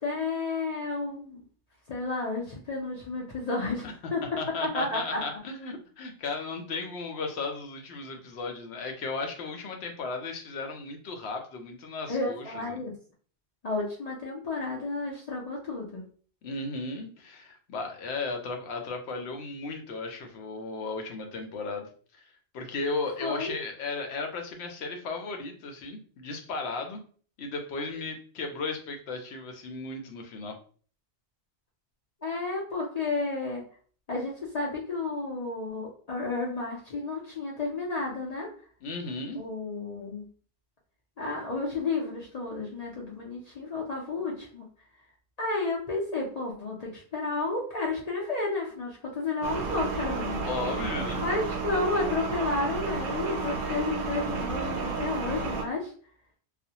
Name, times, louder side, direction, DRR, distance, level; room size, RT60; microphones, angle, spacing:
voice 1, 0.0-1.4 1.9-3.8 4.1-5.2 12.1-12.9 13.6-16.0 23.2-23.6 32.2-33.6 34.1-38.5 39.4-40.3 41.2-44.7 45.4-50.4 51.2-55.9, left 3 dB, 50° left, -3 dB, 0.6 m, -31 dB
voice 2, 4.2-12.8 16.4-21.9 22.5-27.0 27.4-30.6 38.8-39.4 50.4-51.2, left 3 dB, 80° left, 4 dB, 0.8 m, -35 dB
sound 1, 49.4-55.6, right 4 dB, 60° right, 0.6 m, -32 dB
2.4 x 2.0 x 2.8 m, 0.43 s
omnidirectional pair, 1.1 m